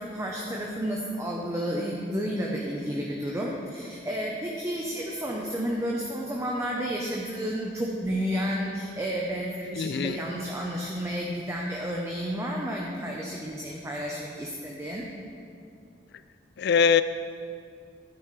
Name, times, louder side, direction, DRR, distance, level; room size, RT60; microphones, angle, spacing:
voice 1, 0.0-15.1, equal, 15° right, -2 dB, 0.8 m, -31 dB
voice 2, 9.8-10.2 16.6-17.0, left 6 dB, 60° left, 13 dB, 0.4 m, -22 dB
13.5 x 10.0 x 3.3 m, 2.4 s
head